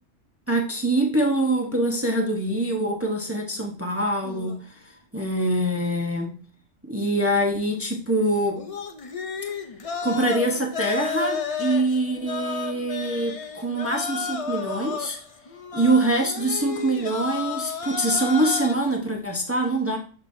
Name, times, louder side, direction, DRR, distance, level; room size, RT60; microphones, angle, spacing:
voice 1, 0.5-4.7 5.1-6.3 6.8-8.6 10.0-15.2 15.7-20.0, right 1 dB, 15° right, 1 dB, 0.8 m, -24 dB
sound 1, 4.2-4.6 8.5-19.0, left 5 dB, 40° left, 0.5 m, -32 dB
7.0 x 6.0 x 2.7 m, 0.43 s
omnidirectional pair, 1.4 m